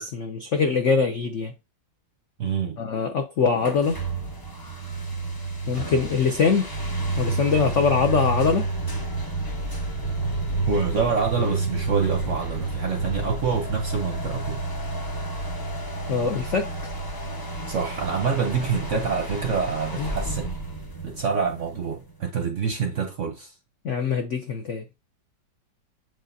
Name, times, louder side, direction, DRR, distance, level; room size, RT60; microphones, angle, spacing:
voice 1, 0.0-1.5 2.8-4.0 5.7-6.7 7.2-8.7 16.1-16.9 20.0-20.1 23.8-24.8, left 5 dB, 75° left, 0.6 m, -23 dB
voice 2, 2.4-2.8 10.7-14.6 17.7-20.5 21.0-23.5, right 5 dB, 55° right, 0.8 m, -26 dB
sound 1, 3.6-22.1, right 2 dB, 35° left, 0.3 m, -30 dB
7.7 x 5.0 x 2.6 m
omnidirectional pair, 2.1 m